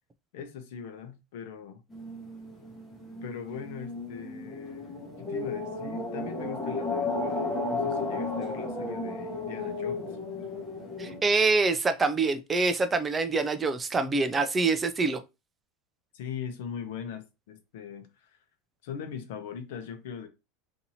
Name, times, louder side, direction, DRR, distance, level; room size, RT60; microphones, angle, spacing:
voice 1, 0.3-1.8 3.2-10.1 16.1-18.4 18.8-20.3, left 7 dB, 65° left, 0.8 m, -40 dB
sound 1, 1.9-11.2, left 3 dB, 15° left, 0.9 m, -34 dB
voice 2, 11.0-15.2, right 3 dB, 15° right, 0.4 m, -25 dB
2.8 x 2.6 x 4.1 m
supercardioid pair, 170°, 0 cm